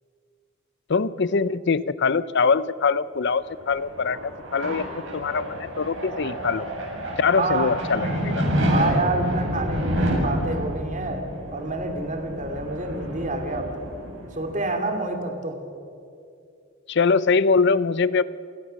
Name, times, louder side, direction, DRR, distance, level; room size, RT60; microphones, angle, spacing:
voice 1, 0.9-4.9 5.1-6.6 7.2-8.4 16.9-18.2, left 5 dB, 55° left, 17 dB, 0.6 m, -23 dB
sound 1, 3.4-14.7, equal, 70° right, 7.1 m, -29 dB
voice 2, 7.4-7.7 8.7-11.2 11.5-13.9 14.4-15.6, right 2 dB, 40° right, 5 dB, 2.6 m, -28 dB
28.0 x 17.0 x 6.5 m, 2.5 s
head